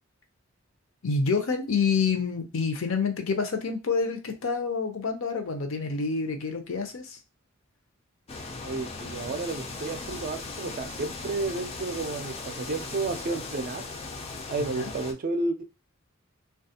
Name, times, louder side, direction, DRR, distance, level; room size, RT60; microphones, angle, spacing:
voice 1, 1.0-7.2 14.6-14.9, left 5 dB, 70° left, 5 dB, 0.6 m, -28 dB
sound 1, 8.3-15.1, left 3 dB, 30° left, 0.4 m, -38 dB
voice 2, 8.6-13.8 14.5-15.6, right 3 dB, 40° right, 7 dB, 0.3 m, -31 dB
3.2 x 2.3 x 2.7 m, 0.28 s
head